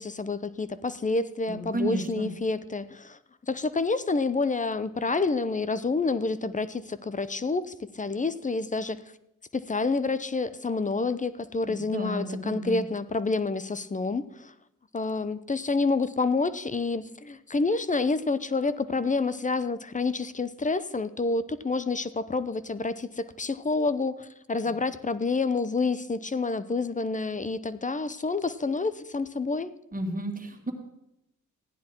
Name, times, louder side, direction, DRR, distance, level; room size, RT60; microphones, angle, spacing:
voice 1, 0.0-3.2 3.5-9.0 9.5-14.5 14.9-29.7, left 3 dB, 25° left, 15 dB, 0.7 m, -28 dB
voice 2, 1.5-2.3 11.6-12.8 29.9-30.7, right 2 dB, 25° right, 4 dB, 2.4 m, -32 dB
15.5 x 10.0 x 4.5 m, 0.85 s
cardioid pair, 70°, 32 cm